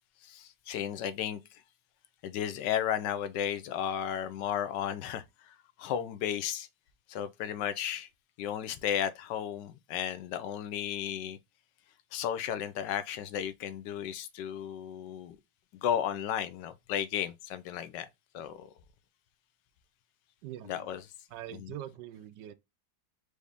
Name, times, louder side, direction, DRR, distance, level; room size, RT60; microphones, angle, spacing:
voice 1, 0.2-1.6 2.2-6.7 7.1-8.1 8.4-11.4 12.1-15.4 15.7-18.1 18.3-18.7 20.7-21.0 21.6-21.7, left 9 dB, 80° left, 1.3 m, -34 dB
voice 2, 20.4-20.9 21.3-22.5, right 12 dB, 80° right, 1.2 m, -43 dB
4.9 x 2.7 x 3.3 m
omnidirectional pair, 1.9 m